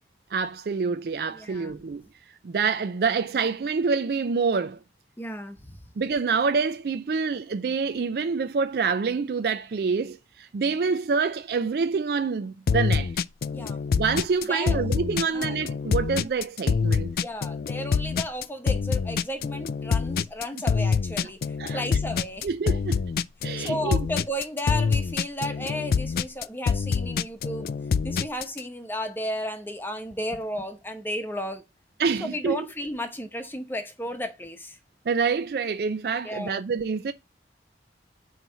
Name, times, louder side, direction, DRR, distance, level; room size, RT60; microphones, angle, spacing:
voice 1, 0.3-2.0 2.4-4.8 6.0-13.1 13.9-17.1 21.6-21.8 22.4-23.0 23.4-24.1 32.0-32.6 35.1-37.1, right 5 dB, 60° right, 0.4 m, -26 dB
voice 2, 1.3-1.7 5.2-5.8 13.5-13.8 14.5-14.9 15.2-15.6 17.2-22.5 23.6-27.7 28.0-31.6 32.2-34.8 36.2-36.6, equal, 10° left, 0.9 m, -33 dB
sound 1, 12.7-28.6, left 5 dB, 55° left, 0.3 m, -26 dB
9.2 x 3.1 x 5.6 m
head